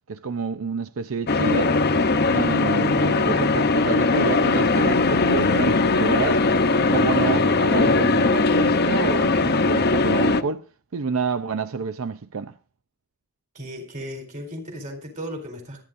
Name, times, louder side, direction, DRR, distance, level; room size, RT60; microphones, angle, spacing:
voice 1, 0.1-1.7 2.3-6.4 6.8-10.7 10.9-12.5, right 5 dB, 70° right, 0.6 m, -29 dB
sound 1, 1.3-10.4, left 3 dB, 50° left, 0.8 m, -20 dB
voice 2, 13.5-15.8, equal, 35° right, 4.0 m, -35 dB
24.5 x 10.0 x 2.6 m
head